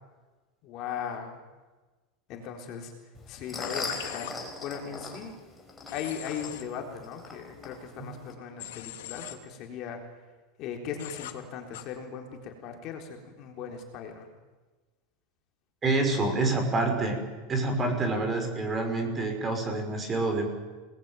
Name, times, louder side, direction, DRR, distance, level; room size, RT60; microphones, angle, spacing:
voice 1, 0.6-1.4 2.3-2.9 3.3-5.4 5.9-10.0 10.6-14.3, left 7 dB, 35° left, 3 dB, 3.8 m, -38 dB
sound 1, 3.1-8.3, left 3 dB, 10° left, 4.8 m, -40 dB
Human voice / Train, 3.6-4.3 5.9-6.6 8.6-9.3 11.0-11.3 11.7-11.8, left 13 dB, 80° left, 3.0 m, -40 dB
voice 2, 15.8-17.2 17.5-20.4, right 2 dB, 15° right, 5 dB, 5.4 m, -27 dB
29.0 x 20.5 x 9.1 m, 1.3 s
supercardioid pair, 165°, 0 cm